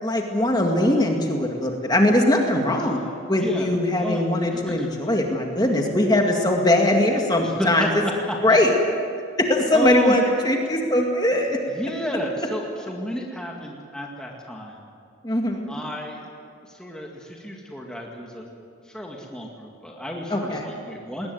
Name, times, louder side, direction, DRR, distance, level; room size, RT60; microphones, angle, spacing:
voice 1, 0.0-3.0 3.3-7.9 8.4-8.7 9.4-11.6 15.2-15.7 20.3-20.7, left 1 dB, 20° left, 2 dB, 2.1 m, -21 dB
voice 2, 3.4-3.7 4.0-4.2 4.5-4.9 7.4-7.9 8.3-8.4 9.7-10.2 11.7-14.8 15.7-16.2 16.7-18.4 18.9-21.3, equal, 5° left, -1 dB, 2.0 m, -31 dB
20.5 x 19.0 x 9.3 m, 2.3 s
head